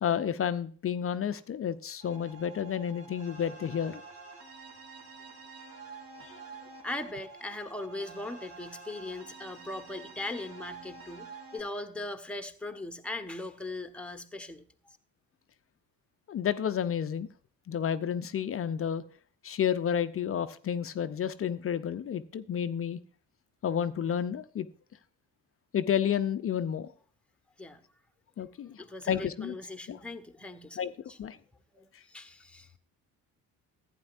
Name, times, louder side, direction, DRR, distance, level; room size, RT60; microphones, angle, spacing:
voice 1, 0.0-4.0 6.2-6.3 16.3-17.3 17.7-19.0 19.4-23.0 23.6-24.7 25.7-26.9 28.4-29.5 29.9-30.0 30.8-30.9 31.2-31.4 31.9-32.0, left 8 dB, 30° left, 12 dB, 0.5 m, -31 dB
sound 1, 2.0-11.6, right 4 dB, 65° right, 2.9 m, -48 dB
voice 2, 6.3-15.0 27.6-27.8 28.8-31.2 31.7-32.7, left 2 dB, ahead, 7 dB, 1.1 m, -40 dB
15.0 x 9.2 x 2.5 m, 0.43 s
figure-of-eight pair, 50°, 49 cm